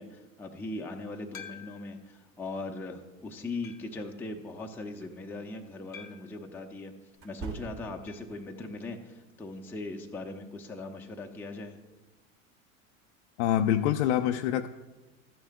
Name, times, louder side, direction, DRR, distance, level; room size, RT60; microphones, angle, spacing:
voice 1, 0.0-6.9 7.2-11.8, left 2 dB, 5° left, 1 dB, 0.6 m, -39 dB
sound 1, 1.3-2.0 2.6-2.7 3.6-4.0 5.9-6.4 8.1-8.4 8.6-8.7 9.0-9.1 11.1-11.2, left 8 dB, 90° left, 0.9 m, -48 dB
sound 2, 4.9-5.1 7.1-8.2, right 5 dB, 35° right, 1.4 m, -42 dB
voice 2, 13.4-14.7, left 11 dB, 60° left, 6 dB, 0.5 m, -25 dB
13.5 x 10.5 x 2.2 m, 1.2 s
hypercardioid pair, 90°, 41 cm